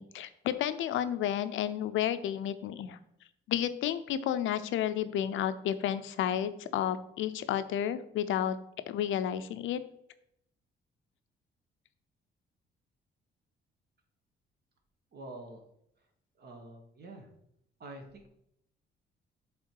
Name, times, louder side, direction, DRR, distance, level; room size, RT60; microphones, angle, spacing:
voice 1, 0.0-3.0 3.5-8.6 8.9-9.8, left 10 dB, 80° left, 12 dB, 0.6 m, -31 dB
voice 2, 15.1-15.6 16.4-17.3 17.8-18.3, right 2 dB, 55° right, 4 dB, 1.4 m, -46 dB
7.4 x 3.7 x 4.6 m, 0.75 s
cardioid pair, 90°, 20 cm